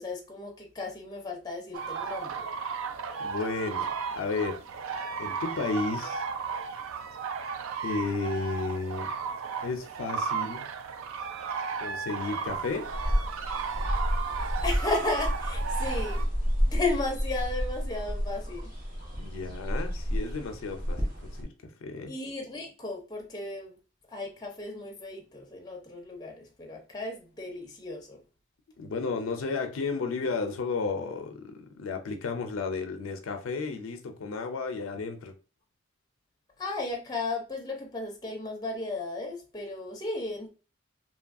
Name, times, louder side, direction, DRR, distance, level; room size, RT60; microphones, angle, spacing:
voice 1, 0.0-2.4 14.6-16.3 16.7-18.7 22.1-23.7 24.1-28.2 36.6-40.5, left 2 dB, 20° left, 0.5 m, -34 dB
sound 1, 1.7-16.2, right 6 dB, 80° right, 0.3 m, -35 dB
voice 2, 3.2-4.6 5.2-6.2 7.8-9.1 9.6-10.7 11.8-12.9 19.2-22.1 28.8-35.3, left 4 dB, 80° left, 0.4 m, -33 dB
sound 2, 12.5-21.4, equal, 40° right, 0.8 m, -31 dB
2.9 x 2.3 x 2.4 m
head